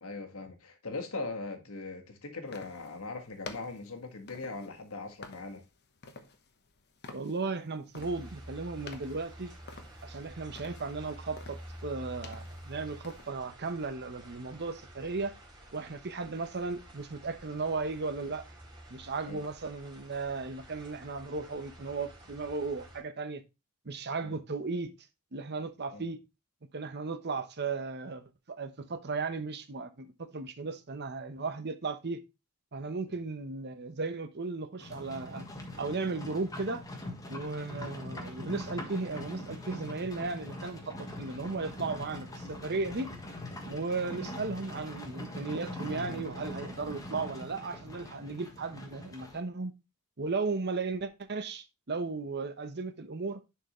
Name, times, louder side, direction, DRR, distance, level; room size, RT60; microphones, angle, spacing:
voice 1, 0.0-5.7 19.2-19.4 24.2-24.3 25.9-26.0 33.1-33.2, left 3 dB, 65° left, 1.6 m, -40 dB
sound 1, 2.5-13.3, left 3 dB, 50° left, 1.0 m, -51 dB
voice 2, 7.1-9.5 10.0-15.3 15.7-18.4 18.9-23.4 23.8-24.9 25.3-26.2 26.7-32.2 32.7-35.4 35.8-36.8 37.3-43.1 43.7-49.7 50.2-53.4, right 3 dB, 50° right, 0.9 m, -36 dB
sound 2, 7.9-23.0, right 1 dB, 20° right, 2.7 m, -50 dB
Livestock farm animals working animals, 34.8-49.4, left 1 dB, 15° left, 1.5 m, -42 dB
10.5 x 4.7 x 3.1 m
head